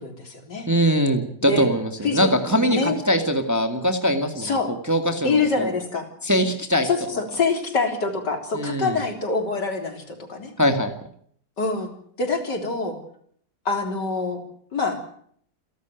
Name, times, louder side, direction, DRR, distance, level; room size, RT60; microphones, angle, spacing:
voice 1, 0.0-0.7 1.4-1.7 2.0-2.3 2.7-3.0 4.4-4.7 5.2-6.1 6.8-10.5 11.6-11.9 12.2-13.0 13.7-14.4 14.7-15.0, left 4 dB, 65° left, 4 dB, 4.2 m, -25 dB
voice 2, 0.7-4.6 4.9-5.7 6.2-6.9 8.5-9.0 10.6-10.9, equal, 10° right, 6 dB, 1.9 m, -22 dB
29.0 x 12.0 x 9.1 m, 0.65 s
omnidirectional pair, 2.0 m